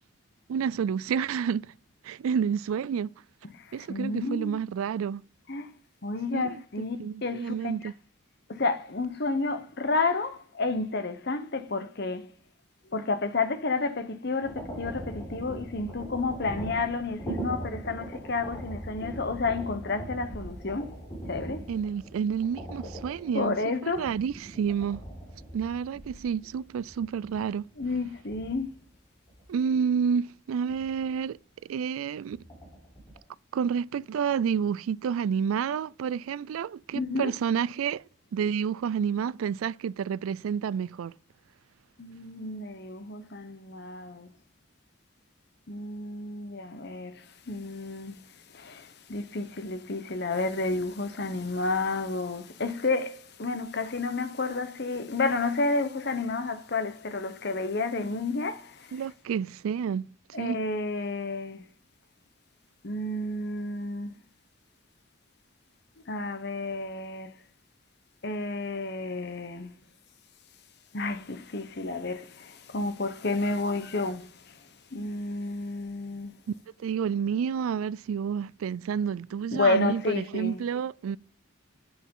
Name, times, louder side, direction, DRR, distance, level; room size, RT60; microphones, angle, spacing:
voice 1, 0.5-1.7 2.0-3.1 3.7-5.2 6.3-6.6 7.0-7.9 21.7-23.6 23.8-25.0 25.5-27.7 29.5-31.4 31.7-32.4 33.5-38.0 38.3-41.1 58.9-60.6 76.8-81.2, right 7 dB, 85° right, 0.3 m, -29 dB
voice 2, 3.5-4.6 5.5-5.7 6.0-7.7 8.5-12.3 12.9-20.9 21.3-21.7 23.3-24.1 27.8-28.8 36.9-37.3 42.0-44.3 45.7-48.2 48.5-59.0 60.3-61.6 62.8-64.1 66.1-67.3 68.2-69.8 70.9-74.6 74.9-76.3 79.5-80.6, left 3 dB, 55° left, 1.0 m, -31 dB
sound 1, 14.4-28.8 29.3-29.5 30.7-31.3 32.3-33.2, right 1 dB, 25° left, 3.9 m, -41 dB
9.3 x 6.9 x 3.8 m
head